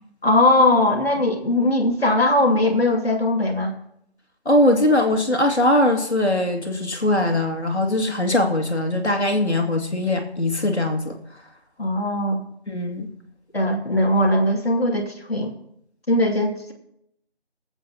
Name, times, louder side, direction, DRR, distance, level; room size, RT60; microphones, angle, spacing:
voice 1, 0.2-3.7 11.8-12.4 13.5-15.5 16.1-16.7, left 1 dB, 65° left, 0 dB, 2.5 m, -20 dB
voice 2, 4.5-11.2 12.7-13.1, left 1 dB, 90° left, 4 dB, 2.4 m, -21 dB
22.0 x 8.3 x 2.9 m, 0.76 s
figure-of-eight pair, 175°, 33 cm